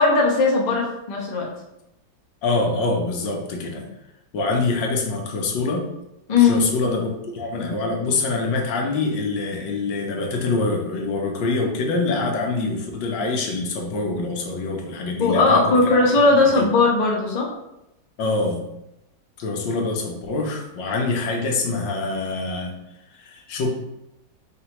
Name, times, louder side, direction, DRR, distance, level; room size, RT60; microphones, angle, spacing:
voice 1, 0.0-1.5 6.3-6.6 15.2-17.5, left 3 dB, 35° left, -3 dB, 0.7 m, -18 dB
voice 2, 2.4-3.9 4.3-5.9 6.4-16.0 16.3-16.7 18.2-18.6 19.4-22.7 23.1-23.7, left 3 dB, 85° left, 1 dB, 1.5 m, -25 dB
4.7 x 3.3 x 2.9 m, 0.88 s
omnidirectional pair, 1.9 m